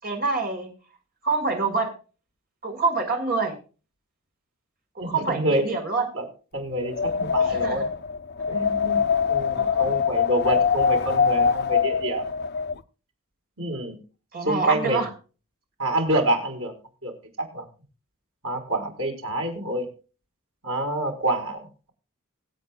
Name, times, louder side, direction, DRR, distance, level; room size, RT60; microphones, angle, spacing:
voice 1, 0.0-0.7 1.2-1.9 2.6-3.5 4.9-6.0 7.4-7.8 9.5-10.0 14.3-15.1, right 3 dB, 45° right, 3 dB, 4.9 m, -26 dB
voice 2, 5.0-5.6 6.1-6.2 6.5-7.8 8.5-12.2 13.6-14.0 14.4-15.0 15.8-16.7 17.0-17.1 17.5-17.6 18.4-19.9 20.6-21.9, right 1 dB, 75° right, 2 dB, 5.1 m, -27 dB
Wind, 6.8-12.8, left 6 dB, 55° left, 1.0 m, -23 dB
25.0 x 8.6 x 2.4 m, 0.35 s
head